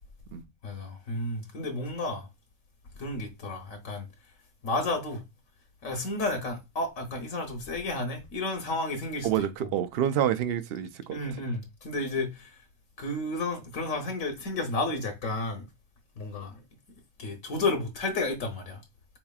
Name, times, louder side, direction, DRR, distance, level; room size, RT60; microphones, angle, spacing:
voice 1, 0.6-2.3 3.0-4.1 4.6-5.2 5.8-9.7 11.1-12.6 13.0-15.7 16.2-16.6 17.2-18.8, left 2 dB, 80° left, 1.2 m, -32 dB
voice 2, 9.2-11.2, right 10 dB, 60° right, 0.6 m, -27 dB
4.3 x 3.2 x 2.3 m
omnidirectional pair, 1.4 m